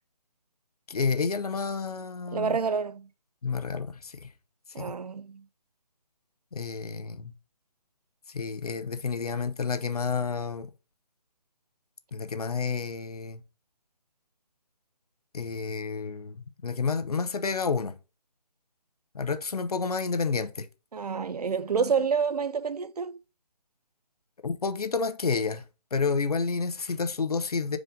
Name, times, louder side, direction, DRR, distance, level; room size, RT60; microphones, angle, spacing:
voice 1, 0.9-2.6 3.4-4.3 4.8-4.9 6.5-7.3 8.3-10.7 12.1-13.4 15.3-18.0 19.1-20.7 24.4-25.6 25.9-27.8, left 5 dB, 65° left, 0.7 m, -30 dB
voice 2, 2.3-3.1 4.7-5.4 20.9-23.2, right 6 dB, 65° right, 0.5 m, -28 dB
4.8 x 3.8 x 5.2 m
hypercardioid pair, 175°, 21 cm